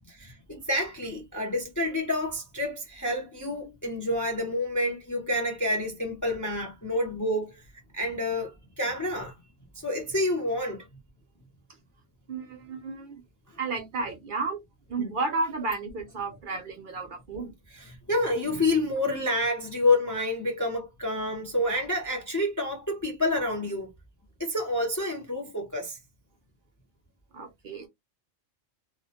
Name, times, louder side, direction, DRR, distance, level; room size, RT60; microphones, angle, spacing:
voice 1, 0.1-7.7 7.9-9.4 9.8-10.8 13.5-13.6 15.0-15.1 17.7-23.9 24.4-26.0, left 1 dB, 30° left, 0.3 m, -28 dB
voice 2, 12.3-13.2 13.6-14.6 14.9-17.5 27.3-27.9, right 3 dB, 60° right, 0.6 m, -32 dB
2.2 x 2.1 x 2.7 m
omnidirectional pair, 1.2 m